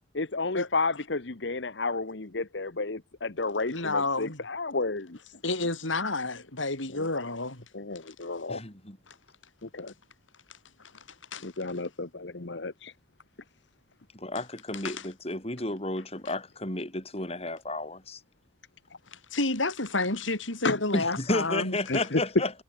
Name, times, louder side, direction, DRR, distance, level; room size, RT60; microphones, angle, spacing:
voice 1, 0.1-5.2 6.9-7.1 7.7-8.6 9.6-9.9 11.4-12.9 20.6-20.8 21.9-22.2, left 3 dB, 65° left, 1.2 m, -31 dB
voice 2, 3.7-4.4 5.4-7.6 9.1-9.2 11.3-11.8 14.8-15.0 19.1-21.8, left 2 dB, 85° left, 6.0 m, -30 dB
voice 3, 8.5-9.0 14.1-18.2 20.9-22.5, left 2 dB, 30° left, 5.8 m, -32 dB
head